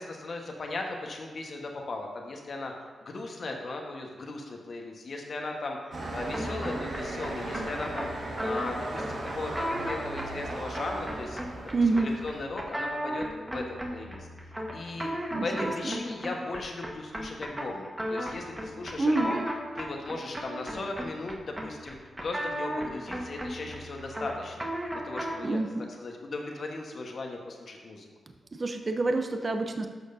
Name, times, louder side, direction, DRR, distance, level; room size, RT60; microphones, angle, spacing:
voice 1, 0.0-2.7 3.0-11.4 11.7-13.3 13.5-19.4 19.8-25.6 26.0-28.1, left 2 dB, 60° left, 1 dB, 1.2 m, -37 dB
sound 1, 5.9-12.5, right 1 dB, 70° right, 1.6 m, -37 dB
sound 2, 6.3-25.5, equal, 15° right, 1.3 m, -36 dB
voice 2, 11.7-12.1 15.3-16.0 19.0-19.4 25.4-25.9 28.5-29.9, right 3 dB, 40° right, 6 dB, 0.6 m, -27 dB
11.0 x 6.3 x 2.7 m, 1.4 s
cardioid pair, 60°, 0 cm